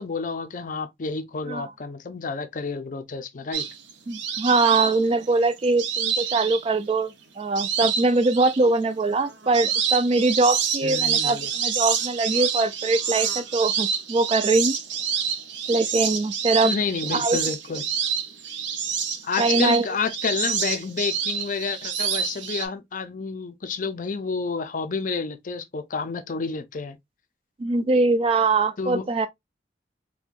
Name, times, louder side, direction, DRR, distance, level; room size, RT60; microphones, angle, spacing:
voice 1, 0.0-3.7 10.8-11.5 16.6-17.8 19.2-27.0 28.8-29.1, left 4 dB, 45° left, 0.5 m, -29 dB
sound 1, 3.5-7.0 7.6-8.7 9.1-22.7, right 7 dB, 85° right, 0.7 m, -27 dB
voice 2, 4.1-14.8 15.7-16.7 17.1-17.4 19.4-19.9 27.6-29.3, right 3 dB, 30° right, 0.3 m, -22 dB
4.4 x 2.2 x 2.4 m
head